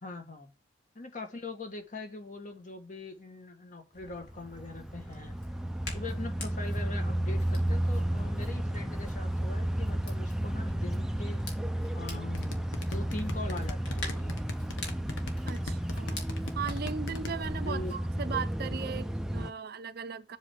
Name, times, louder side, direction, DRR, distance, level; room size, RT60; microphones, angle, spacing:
voice 1, 0.0-0.5 0.9-5.3 5.9-11.4 11.9-12.6 12.9-14.4 17.6-18.0, left 3 dB, 45° left, 1.5 m, -42 dB
Hands, 3.9-17.9, left 2 dB, 60° left, 2.6 m, -47 dB
sound 1, 4.2-19.5, right 1 dB, 5° right, 0.4 m, -32 dB
sound 2, 12.3-17.3, left 2 dB, 90° left, 1.2 m, -39 dB
voice 2, 15.5-16.3 16.6-20.4, right 6 dB, 55° right, 0.5 m, -37 dB
7.4 x 3.4 x 6.3 m
head